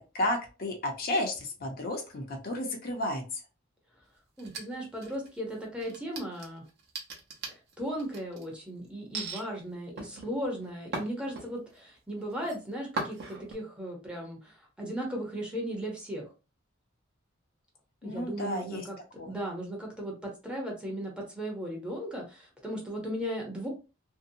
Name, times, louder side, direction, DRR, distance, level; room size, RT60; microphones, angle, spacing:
voice 1, 0.0-3.2 18.0-18.8 19.2-19.3, left 1 dB, 50° left, 2 dB, 0.6 m, -32 dB
voice 2, 4.4-6.6 7.8-16.3 18.0-23.7, equal, 5° right, -1 dB, 0.7 m, -36 dB
sound 1, 4.4-5.4 5.8-8.4 9.1-9.4 10.0-11.8 12.2-12.6 13.0-13.5, right 3 dB, 55° right, 0.8 m, -38 dB
2.6 x 2.0 x 2.6 m, 0.30 s
head